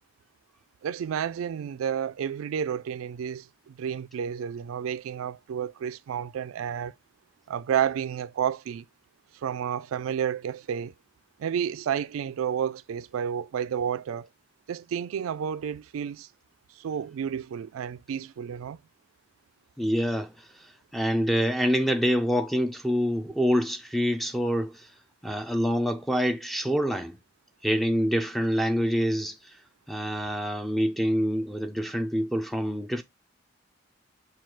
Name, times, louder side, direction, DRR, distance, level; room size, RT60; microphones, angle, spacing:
voice 1, 0.8-6.9 7.5-8.8 9.4-10.9 11.4-14.3 14.7-16.3 16.8-18.8, right 8 dB, 85° right, 0.3 m, -31 dB
voice 2, 19.8-24.9 25.2-27.2 27.6-29.6 29.9-33.0, equal, ahead, 0.3 m, -26 dB
5.7 x 2.3 x 3.1 m
head